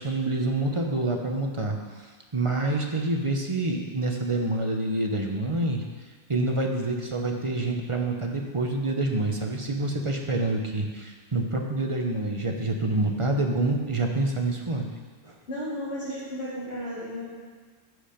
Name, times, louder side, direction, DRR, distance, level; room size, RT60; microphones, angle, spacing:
voice 1, 0.0-5.8 6.3-14.9 15.2-15.3, right 2 dB, 30° right, 2 dB, 0.9 m, -27 dB
voice 2, 15.5-17.4, equal, 70° left, -12 dB, 3.7 m, -34 dB
14.0 x 5.0 x 5.1 m, 1.5 s
omnidirectional pair, 1.2 m